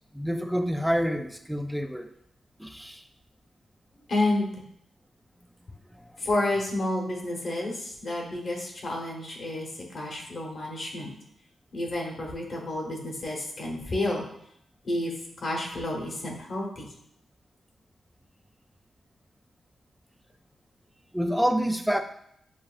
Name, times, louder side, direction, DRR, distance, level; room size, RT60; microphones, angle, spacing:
voice 1, 0.1-2.1 2.6-3.0 21.1-22.0, equal, ahead, 7 dB, 0.3 m, -27 dB
voice 2, 4.1-4.5 6.2-9.7 9.9-11.1 11.7-14.2 14.8-15.1 15.4-16.9, left 1 dB, 45° left, 0 dB, 1.1 m, -30 dB
7.1 x 2.6 x 2.5 m, 0.73 s
cardioid pair, 110°, 0 cm